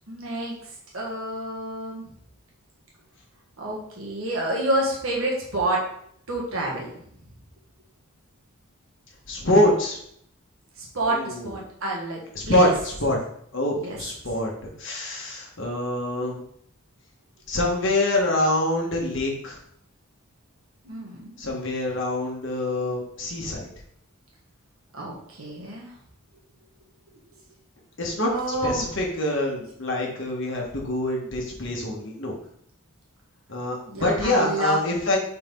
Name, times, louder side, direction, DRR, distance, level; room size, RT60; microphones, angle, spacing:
voice 1, 0.1-0.5 0.9-2.0 3.6-5.8 6.3-6.8 10.8-12.2 12.5-12.7 13.8-14.0 20.8-21.3 24.9-25.9 28.3-28.8 33.9-34.8, right 1 dB, 70° right, -3 dB, 1.4 m, -28 dB
voice 2, 9.3-10.0 11.1-11.6 12.3-13.2 13.5-16.4 17.5-19.6 21.4-23.7 28.0-32.4 33.5-35.2, left 1 dB, 55° left, -1 dB, 1.4 m, -25 dB
4.4 x 4.1 x 5.2 m, 0.67 s
head